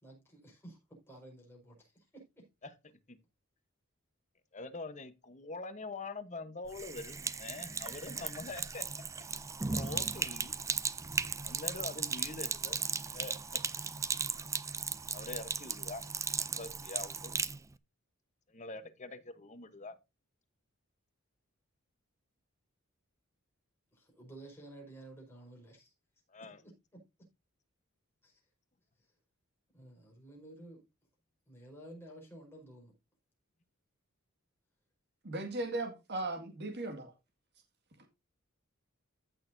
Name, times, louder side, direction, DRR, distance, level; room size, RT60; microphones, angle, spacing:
voice 1, 0.0-2.4 23.9-25.9 26.6-26.7 28.2-28.3 29.7-30.8 31.5-32.9, right 1 dB, 10° left, 5.1 m, -53 dB
voice 2, 4.5-8.8 9.7-10.6 11.4-12.8 13.1-13.6 15.1-16.0 16.4-17.3 18.5-19.9 26.3-26.6, left 3 dB, 35° left, 1.1 m, -44 dB
Sink (filling or washing), 6.7-17.6, right 5 dB, 15° right, 0.4 m, -37 dB
voice 3, 35.2-37.1, right 2 dB, 55° right, 2.0 m, -37 dB
15.0 x 6.3 x 2.7 m
head